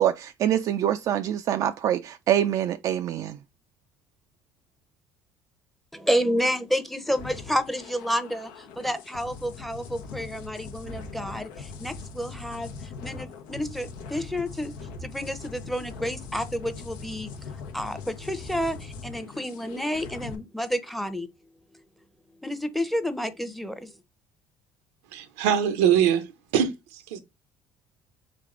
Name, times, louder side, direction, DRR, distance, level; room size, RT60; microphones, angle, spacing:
voice 1, 0.0-3.4, right 11 dB, 60° right, 0.4 m, -25 dB
voice 2, 5.9-14.7 15.0-17.3 17.7-21.3 22.4-24.0, equal, ahead, 0.7 m, -30 dB
sound 1, 7.1-20.3, left 4 dB, 85° left, 0.8 m, -41 dB
voice 3, 25.1-26.3 26.5-27.2, right 9 dB, 85° right, 0.7 m, -23 dB
3.7 x 3.4 x 3.7 m
supercardioid pair, 75°, 7 cm